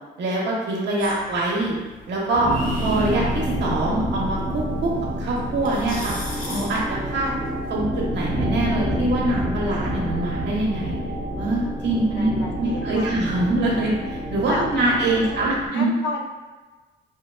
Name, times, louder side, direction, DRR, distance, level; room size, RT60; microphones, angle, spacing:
voice 1, 0.2-1.8 2.1-2.5 2.8-4.9 5.2-6.1 6.5-7.3 7.7-11.0 11.4-15.9, right 2 dB, 60° right, -4 dB, 0.6 m, -24 dB
sound 1, 1.0-7.7, left 1 dB, 45° left, 0.9 m, -38 dB
sound 2, 2.3-15.7, equal, 15° right, 0.6 m, -28 dB
voice 2, 12.1-13.1 14.5-16.2, left 2 dB, 65° left, 2 dB, 0.5 m, -32 dB
2.7 x 2.2 x 2.2 m, 1.3 s
cardioid pair, 90°, 20 cm